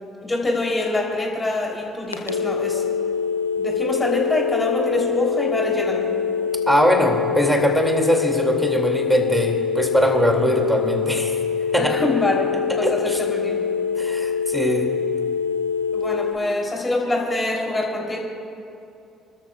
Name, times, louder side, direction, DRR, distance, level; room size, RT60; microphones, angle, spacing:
voice 1, 0.2-2.8 3.6-6.1 11.8-12.5 12.8-13.6 15.9-18.2, left 2 dB, 20° left, -2 dB, 3.5 m, -25 dB
sound 1, 2.1-16.3, left 6 dB, 90° left, 0.6 m, -24 dB
voice 2, 6.7-11.4 11.7-12.0 12.8-13.2 14.0-14.9, equal, 5° right, 2 dB, 2.6 m, -21 dB
29.0 x 13.0 x 2.4 m, 2.6 s
figure-of-eight pair, 45°, 0 cm